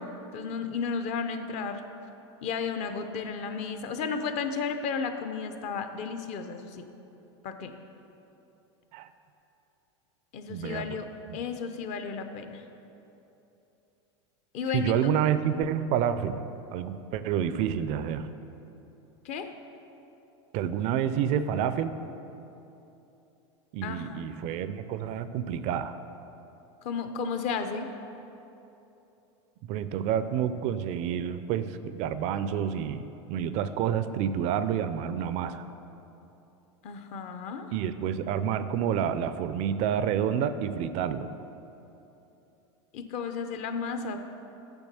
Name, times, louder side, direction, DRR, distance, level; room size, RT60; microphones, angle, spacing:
voice 1, 0.0-1.8 2.4-6.9 7.4-7.8 10.3-12.6 14.5-15.1 19.2-19.5 23.8-24.2 26.8-27.9 36.8-37.7 42.9-44.2, left 5 dB, 50° left, 7 dB, 0.7 m, -33 dB
voice 2, 10.5-10.8 11.3-11.4 14.7-16.4 16.7-18.3 20.5-22.0 23.7-26.0 29.7-35.7 37.7-41.3, right 9 dB, 50° right, 12 dB, 0.4 m, -29 dB
7.1 x 5.9 x 6.8 m, 2.9 s
supercardioid pair, 115°, 15 cm